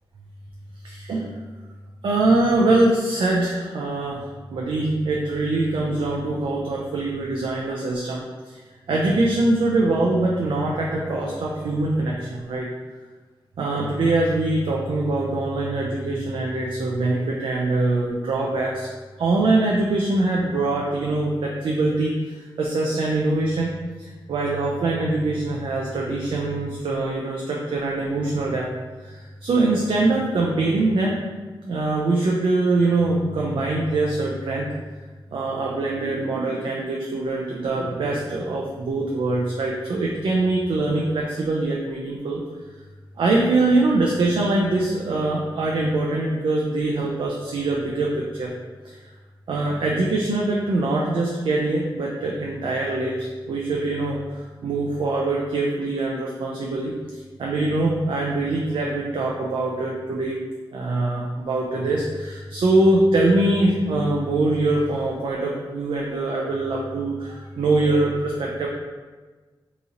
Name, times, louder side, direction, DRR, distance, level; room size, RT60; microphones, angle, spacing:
voice 1, 0.8-1.3 2.0-8.2 8.5-8.6 8.9-12.7 13.6-18.9 19.2-28.7 29.0-31.2 31.6-34.7 35.3-42.4 43.2-48.5 48.8-49.0 49.5-56.9 57.4-60.4 60.7-68.7, right 2 dB, 75° right, -2 dB, 0.4 m, -23 dB
2.9 x 2.7 x 3.7 m, 1.3 s
wide cardioid pair, 95°, 9 cm